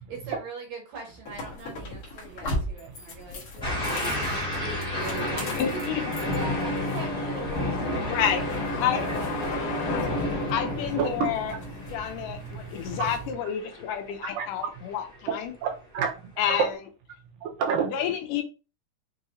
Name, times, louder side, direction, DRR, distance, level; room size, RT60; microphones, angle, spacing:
voice 1, 0.1-5.9 6.2-8.2 8.5-10.4, right 4 dB, 65° right, 1.9 m, -42 dB
sound 1, 1.2-13.3, left 1 dB, 60° left, 1.4 m, -40 dB
sound 2, 3.6-14.4 14.9-15.3, equal, 5° left, 0.6 m, -36 dB
sound 3, 3.7-12.5, left 1 dB, 45° left, 2.2 m, -31 dB
voice 2, 5.6-6.0 8.1-8.4 8.8-9.0 9.9-10.1 10.5-11.5 11.9-15.5 16.4-16.7 17.8-18.4, left 9 dB, 80° left, 2.1 m, -29 dB
voice 3, 10.1-10.5 10.9-11.3 11.6-11.8 12.0-13.4 14.2-14.5 15.6-16.3 16.6-16.7 17.4-17.9, right 6 dB, 85° right, 2.6 m, -31 dB
6.2 x 2.9 x 2.6 m
omnidirectional pair, 4.0 m